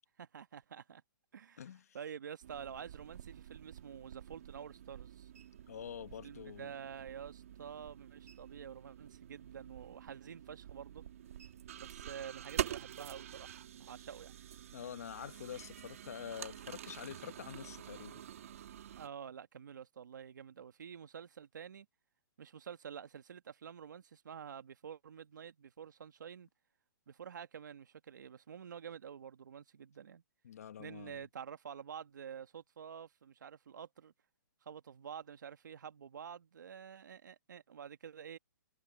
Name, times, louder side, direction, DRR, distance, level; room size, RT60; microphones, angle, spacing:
voice 1, 0.2-1.0 1.3-1.6 1.9-5.3 6.2-11.0 11.8-14.4 15.6-15.7 19.0-21.9 22.4-26.5 27.1-30.2 30.8-34.1 34.6-38.4, right 8 dB, 60° right, 1.6 m, -49 dB
voice 2, 1.6-2.0 5.7-6.7 14.7-18.2 30.4-31.3, left 9 dB, 45° left, 1.0 m, -46 dB
sound 1, 2.4-19.1, right 10 dB, 40° right, 2.0 m, -47 dB
hypercardioid pair, 175°, 11 cm